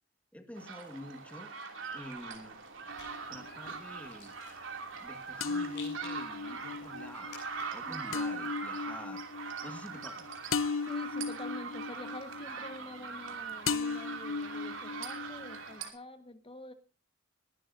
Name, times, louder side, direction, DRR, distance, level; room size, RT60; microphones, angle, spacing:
voice 1, 0.3-1.5 1.9-2.6 3.3-4.3 5.0-7.4 7.7-9.3 9.6-10.3, equal, 5° left, 5 dB, 1.7 m, -47 dB
sound 1, 0.5-15.9, right 5 dB, 75° right, 2.7 m, -42 dB
Rattle, 1.8-7.9, left 5 dB, 60° left, 7.9 m, -55 dB
sound 2, 2.9-3.8 5.4-13.3 13.7-15.8, left 5 dB, 80° left, 0.7 m, -37 dB
voice 2, 10.8-16.7, left 2 dB, 30° left, 9 dB, 1.5 m, -47 dB
21.5 x 12.0 x 2.7 m, 0.34 s
head